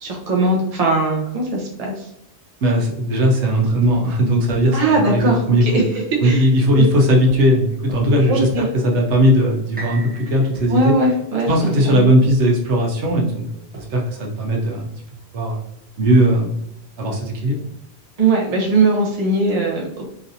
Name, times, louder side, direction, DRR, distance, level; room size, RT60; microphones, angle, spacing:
voice 1, 0.0-2.1 4.7-6.5 6.7-6.8 8.3-8.7 10.7-12.1 18.2-20.1, right 2 dB, 40° right, -1 dB, 0.7 m, -20 dB
voice 2, 2.6-5.8 6.2-10.9 11.5-13.5 13.8-14.9 15.3-15.6 16.0-16.6 17.0-17.7, equal, 90° right, 0 dB, 1.0 m, -18 dB
sound 1, 3.8-4.0 4.5-4.7 5.2-5.4 6.6-6.8 7.3-7.4 7.9-8.1 8.5-8.7 9.1-9.3 10.5-11.1 11.4-11.6 12.2-12.4 13.0-13.3 13.7-13.9, right 1 dB, 70° right, 1.5 m, -38 dB
sound 2, 9.8-13.7 14.3-14.4, right 2 dB, 15° right, 0.4 m, -41 dB
3.2 x 2.6 x 2.6 m, 0.78 s
omnidirectional pair, 1.1 m